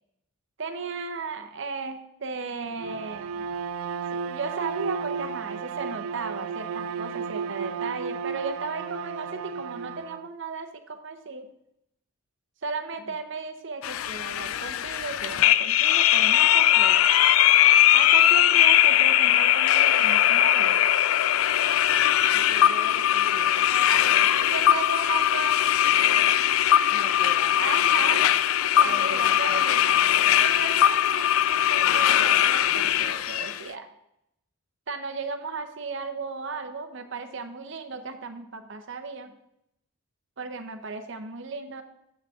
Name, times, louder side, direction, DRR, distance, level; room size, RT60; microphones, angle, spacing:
voice 1, 0.6-3.5 4.2-11.5 12.6-17.0 17.9-20.8 23.9-25.6 27.5-28.3 28.7-30.0 30.4-33.9 34.9-39.3 40.4-41.8, right 4 dB, 60° right, 7 dB, 0.8 m, -35 dB
Bowed string instrument, 2.7-10.3, right 6 dB, 85° right, 0.3 m, -33 dB
sound 1, 13.8-33.6, left 11 dB, 75° left, 0.3 m, -20 dB
voice 2, 22.3-23.7 26.9-27.6 28.8-29.7, left 2 dB, 30° left, 7 dB, 0.7 m, -42 dB
9.4 x 7.3 x 3.6 m, 0.80 s
head